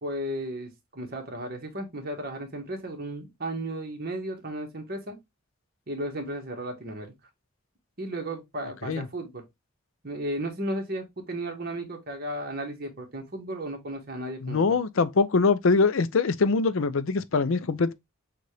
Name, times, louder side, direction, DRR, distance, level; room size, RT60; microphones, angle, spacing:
voice 1, 0.0-5.2 5.9-7.1 8.0-9.4 10.0-14.8, right 1 dB, 45° right, 1.5 m, -34 dB
voice 2, 14.4-17.9, left 4 dB, 70° left, 0.5 m, -23 dB
6.6 x 2.5 x 3.2 m
head